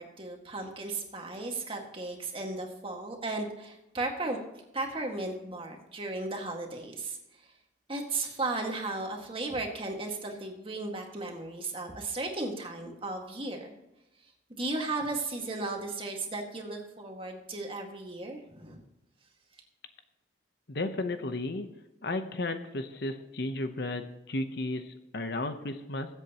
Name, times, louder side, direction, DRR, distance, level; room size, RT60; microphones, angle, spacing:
voice 1, 0.0-4.4 4.7-7.2 7.9-13.7 14.5-18.8, right 2 dB, 30° right, 2 dB, 1.8 m, -35 dB
voice 2, 20.7-21.7 22.0-26.1, left 2 dB, 60° left, 8 dB, 0.9 m, -34 dB
21.5 x 8.1 x 3.0 m, 0.91 s
head